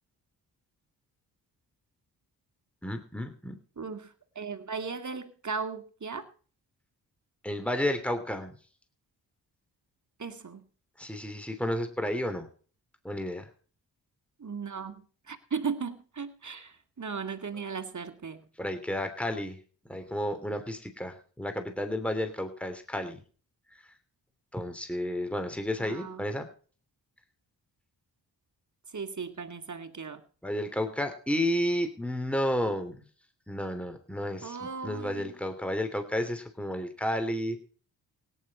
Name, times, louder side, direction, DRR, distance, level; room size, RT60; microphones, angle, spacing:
voice 1, 2.8-3.6 7.4-8.6 11.0-12.5 13.0-13.5 18.6-19.6 19.9-23.2 24.5-26.5 30.4-33.0 33.5-37.6, left 1 dB, 5° left, 7 dB, 3.1 m, -32 dB
voice 2, 3.8-6.3 10.2-10.6 14.4-18.5 25.7-26.2 28.9-30.2 34.4-35.3, right 5 dB, 40° right, 8 dB, 2.2 m, -37 dB
17.5 x 9.9 x 4.3 m, 0.41 s
supercardioid pair, 40°, 46 cm